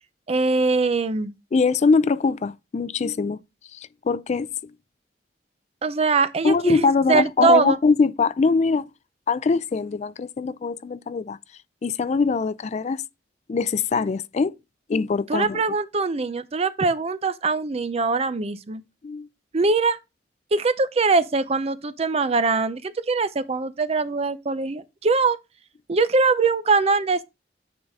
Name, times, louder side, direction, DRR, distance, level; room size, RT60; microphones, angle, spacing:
voice 1, 0.3-1.3 5.8-7.8 15.3-18.8 19.5-20.0 20.5-25.4 25.9-27.2, right 4 dB, 35° right, 0.5 m, -22 dB
voice 2, 1.5-3.4 3.7-4.5 6.4-8.9 9.3-11.4 11.8-13.0 13.5-14.5 14.9-15.6 19.0-19.3, left 4 dB, 40° left, 0.3 m, -22 dB
9.5 x 3.9 x 3.5 m
head